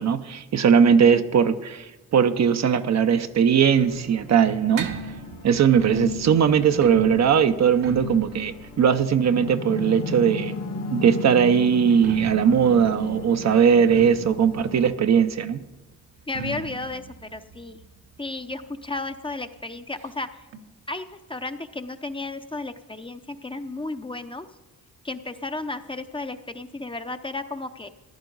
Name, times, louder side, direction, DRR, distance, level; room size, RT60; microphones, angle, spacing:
voice 1, 0.0-4.9 5.4-10.5 10.9-15.6, right 7 dB, 50° right, 9 dB, 0.7 m, -19 dB
sound 1, 3.3-10.6 11.8-19.1 19.4-19.5 19.8-19.9 20.5-20.6, right 1 dB, 70° right, 1.2 m, -38 dB
sound 2, 3.8-13.6, left 4 dB, 70° left, 2.0 m, -47 dB
sound 3, 9.3-14.9, left 3 dB, 50° left, 1.2 m, -34 dB
voice 2, 16.3-17.8 18.2-20.4 20.9-24.5 25.0-27.9, left 2 dB, 15° left, 8 dB, 0.7 m, -33 dB
14.5 x 11.0 x 3.9 m, 1.1 s
cardioid pair, 70°, 34 cm